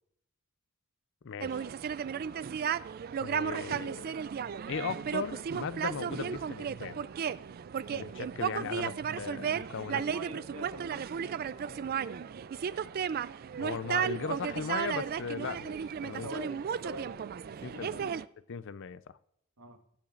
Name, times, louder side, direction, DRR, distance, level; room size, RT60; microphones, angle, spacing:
voice 1, 1.2-1.7 3.2-4.1 4.7-7.0 7.9-10.0 13.6-16.3 17.6-18.0 18.5-19.2, left 6 dB, 60° left, 0.5 m, -38 dB
sound 1, 1.4-18.2, right 7 dB, 45° right, 0.3 m, -34 dB
voice 2, 9.9-12.5 16.2-17.2 17.6-18.1 19.6-19.8, right 1 dB, 85° right, 1.5 m, -44 dB
19.0 x 8.8 x 2.5 m
head